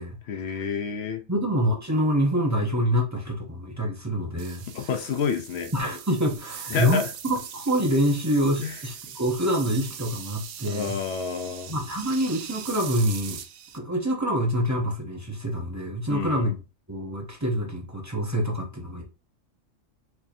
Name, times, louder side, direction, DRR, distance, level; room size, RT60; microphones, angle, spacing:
voice 1, 0.3-1.2 4.7-5.7 6.7-7.1 8.6-8.7 10.6-11.7 16.1-16.5, left 6 dB, 65° left, 0.8 m, -29 dB
voice 2, 1.3-4.7 5.7-7.0 7.3-11.0 11.7-13.4 13.7-16.6 16.9-19.0, equal, 20° right, 0.5 m, -26 dB
sound 1, 4.4-13.8, right 8 dB, 90° right, 1.0 m, -40 dB
4.5 x 2.8 x 2.6 m
omnidirectional pair, 1.4 m